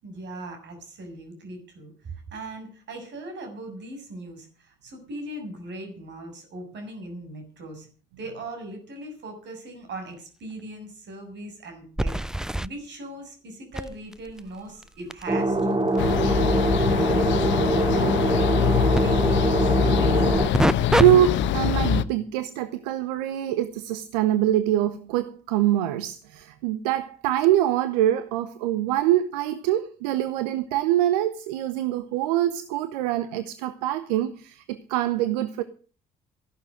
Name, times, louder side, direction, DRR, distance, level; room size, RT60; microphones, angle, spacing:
voice 1, 0.0-7.9 8.2-12.2 12.6-18.6 19.0-19.7 20.2-20.3, right 2 dB, 60° right, 6.8 m, -39 dB
sound 1, 10.1-10.2 10.6-10.7 12.0-12.7 13.7-19.0 20.3-21.1 21.5-21.8 26.4-26.5 27.4-27.5, right 1 dB, 5° right, 0.6 m, -29 dB
sound 2, 15.3-20.5, right 2 dB, 25° right, 2.2 m, -23 dB
sound 3, 16.0-22.0, left 8 dB, 65° left, 1.0 m, -23 dB
voice 2, 20.9-35.6, right 12 dB, 80° right, 0.9 m, -24 dB
15.0 x 11.5 x 6.2 m
hypercardioid pair, 45°, 21 cm